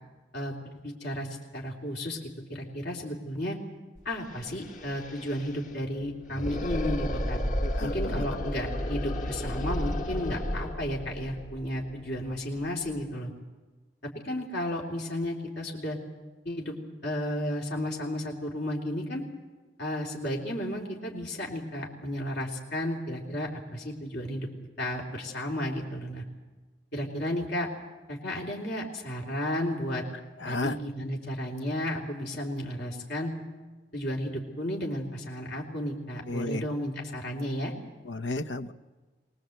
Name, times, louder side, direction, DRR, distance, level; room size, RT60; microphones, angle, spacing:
voice 1, 0.8-2.2 2.5-3.6 4.0-7.4 7.8-13.3 14.0-16.0 16.4-16.7 17.0-19.2 19.8-24.5 24.8-26.2 26.9-27.7 28.1-30.0 30.4-33.3 33.9-37.7, left 1 dB, 70° left, -1 dB, 3.3 m, -33 dB
sound 1, 4.0-4.1 4.3-13.1, equal, 45° left, 1.6 m, -33 dB
voice 2, 7.6-8.2 30.4-30.8 36.3-36.6 38.1-38.7, left 2 dB, 90° left, 11 dB, 0.9 m, -33 dB
23.0 x 19.5 x 8.0 m, 1.3 s
head